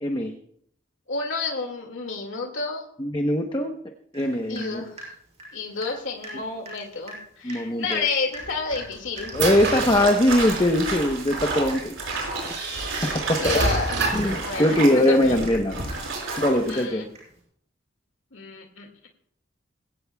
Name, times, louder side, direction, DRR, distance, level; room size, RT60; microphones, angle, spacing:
voice 1, 0.0-0.3 3.0-3.8 4.1-4.8 7.4-8.1 9.3-11.9 12.8-13.5 14.1-15.8 16.4-17.0, left 1 dB, 25° left, 4 dB, 0.9 m, -22 dB
voice 2, 1.1-2.8 4.5-5.1 5.5-9.3 13.4-13.9 14.4-15.3 16.7-17.1 18.3-19.1, left 4 dB, 75° left, 2 dB, 2.1 m, -30 dB
Water tap faucet / Drip, 4.1-4.3 4.6-6.0 6.2-6.4 6.7-6.8 7.1-7.2 7.5-7.7 7.9-17.4, right 1 dB, 35° right, 6.3 m, -42 dB
sound 1, 8.3-10.8 11.7-11.8 12.4-14.4, right 2 dB, 65° right, 4.7 m, -28 dB
sound 2, 9.3-16.8, right 3 dB, 85° right, 5.1 m, -32 dB
21.5 x 16.5 x 2.3 m, 0.67 s
head